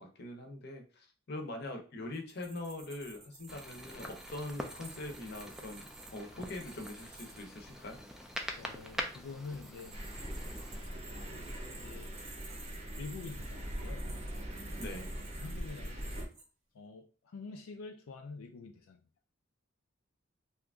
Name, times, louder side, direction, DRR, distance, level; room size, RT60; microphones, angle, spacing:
voice 1, 0.0-8.0 14.7-15.1, left 2 dB, 50° left, 3 dB, 0.7 m, -43 dB
sound 1, 2.1-7.4 9.3-16.4, right 3 dB, 80° right, 0.9 m, -53 dB
sound 2, 3.5-10.8, equal, ahead, 0.3 m, -44 dB
voice 2, 8.6-10.0 11.1-12.1 13.0-14.1 15.4-16.1 16.7-19.1, left 4 dB, 90° left, 4 dB, 0.4 m, -47 dB
Thunder, 9.9-16.3, equal, 30° right, 0.7 m, -41 dB
2.8 x 2.5 x 3.4 m, 0.37 s
head